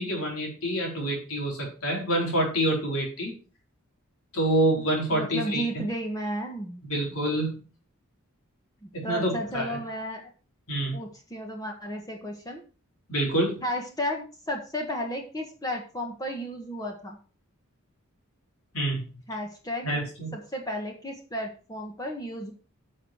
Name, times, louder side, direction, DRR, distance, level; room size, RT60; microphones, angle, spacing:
voice 1, 0.0-3.3 4.3-5.8 6.9-7.6 8.9-9.8 10.7-11.0 13.1-13.6 18.7-19.2 19.8-20.3, right 1 dB, 70° left, -1 dB, 4.6 m, -27 dB
voice 2, 5.1-6.8 9.0-10.3 10.9-12.6 13.6-17.2 19.3-19.9 20.3-22.5, equal, 15° left, 2 dB, 1.5 m, -33 dB
10.5 x 6.6 x 4.6 m, 0.36 s
head